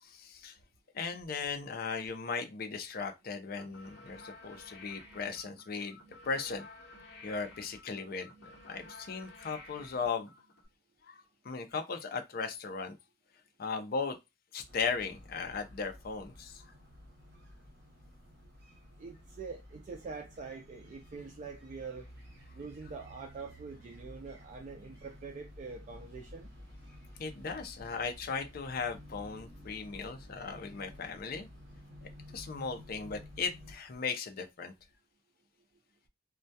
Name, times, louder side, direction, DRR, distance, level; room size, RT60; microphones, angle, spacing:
voice 1, 0.0-0.6 0.9-6.0 6.3-6.7 7.2-10.3 11.0-13.0 13.6-14.2 14.5-16.6 27.2-31.5 32.3-34.7, left 5 dB, 55° left, 0.5 m, -37 dB
sound 1, 3.5-10.7, left 2 dB, 70° left, 0.8 m, -53 dB
sound 2, 14.7-33.8, equal, 60° right, 0.9 m, -53 dB
voice 2, 19.0-22.1 22.5-26.5, right 4 dB, 40° right, 0.3 m, -44 dB
2.2 x 2.2 x 2.6 m
head